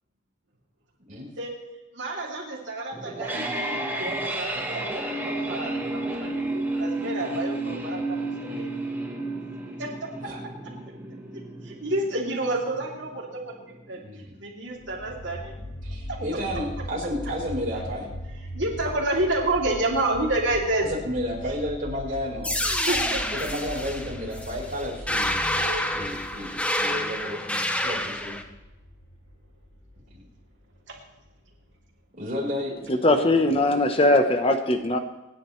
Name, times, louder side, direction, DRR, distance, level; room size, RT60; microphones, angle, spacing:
voice 1, 1.9-8.2 8.5-8.7 9.8-9.9 11.3-14.0 14.4-15.5 16.1-16.2 18.5-20.9 22.7-23.2 25.4-25.9 30.9-31.0, right 2 dB, 65° right, -1 dB, 2.9 m, -29 dB
sound 1, 2.9-13.9, right 2 dB, 10° right, 1.6 m, -32 dB
voice 2, 14.0-14.3 15.8-18.1 20.8-22.5 23.4-28.4 30.1-30.2 32.2-32.7, equal, 45° right, -3 dB, 4.4 m, -32 dB
sound 2, 14.8-31.8, equal, 75° left, 3.2 m, -40 dB
sound 3, 22.4-28.4, left 1 dB, 5° left, 0.9 m, -28 dB
voice 3, 32.9-35.0, left 1 dB, 30° left, 7 dB, 1.0 m, -20 dB
26.0 x 10.0 x 3.2 m, 1.0 s
head